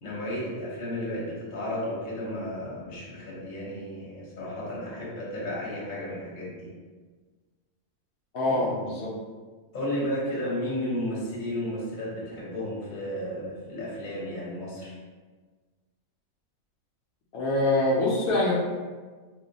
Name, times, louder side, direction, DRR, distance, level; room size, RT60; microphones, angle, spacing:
voice 1, 0.0-6.7 9.7-14.9, left 1 dB, 40° left, -6 dB, 0.9 m, -33 dB
voice 2, 8.3-9.1 17.3-18.5, left 2 dB, 70° left, -5 dB, 1.0 m, -24 dB
3.0 x 2.1 x 3.8 m, 1.4 s
omnidirectional pair, 1.6 m